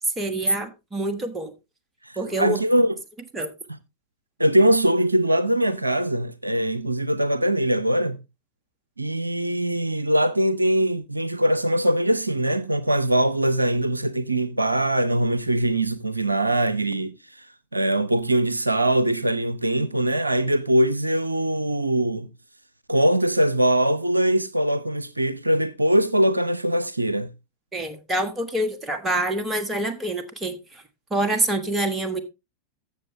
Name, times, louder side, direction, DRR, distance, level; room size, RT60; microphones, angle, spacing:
voice 1, 0.2-1.5 2.2-2.6 3.3-3.5 27.7-30.8 31.1-32.2, right 1 dB, 15° right, 1.5 m, -26 dB
voice 2, 2.1-2.9 4.4-8.2 9.0-17.5 17.7-22.3 22.9-27.3, right 1 dB, 85° right, 0.5 m, -22 dB
13.5 x 7.0 x 3.2 m
figure-of-eight pair, 90°, 0 cm